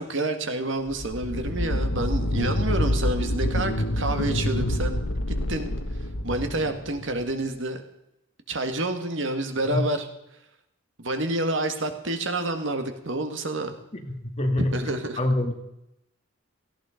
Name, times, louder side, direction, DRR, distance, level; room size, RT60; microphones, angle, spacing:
voice 1, 0.0-5.0 5.3-5.7 6.2-7.8 8.5-10.1 11.0-13.8 14.6-15.2, right 2 dB, 65° right, 7 dB, 1.9 m, -28 dB
sound 1, 0.9-7.3, left 1 dB, 75° left, 1.3 m, -27 dB
voice 2, 13.9-14.8 15.2-15.5, left 1 dB, 30° left, 3 dB, 2.4 m, -25 dB
17.5 x 15.0 x 5.1 m, 0.83 s
head